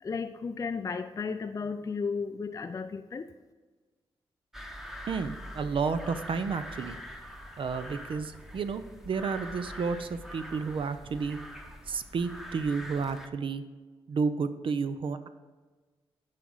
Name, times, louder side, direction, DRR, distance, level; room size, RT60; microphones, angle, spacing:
voice 1, 0.0-3.3, left 5 dB, 30° left, 8 dB, 0.4 m, -34 dB
sound 1, 4.5-13.3, equal, 5° right, 1.0 m, -44 dB
voice 2, 5.1-7.0 7.6-11.4 11.9-13.6 14.1-15.3, right 5 dB, 60° right, 11 dB, 0.5 m, -31 dB
9.5 x 5.0 x 5.5 m, 1.4 s
cardioid pair, 70°, 10 cm